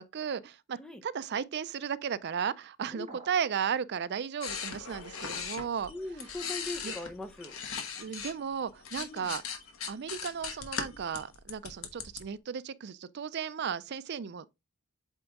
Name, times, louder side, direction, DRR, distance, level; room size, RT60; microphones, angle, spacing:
voice 1, 0.0-5.9 6.8-6.9 8.0-9.4 9.9-14.5, right 7 dB, 50° right, 0.4 m, -35 dB
sound 1, 3.1-3.7, right 3 dB, 30° right, 1.1 m, -50 dB
sound 2, 4.4-8.3 8.7-12.2, left 6 dB, 65° left, 1.2 m, -39 dB
voice 2, 5.9-7.6 9.0-9.3, left 2 dB, 5° left, 0.7 m, -41 dB
8.2 x 3.5 x 3.5 m
head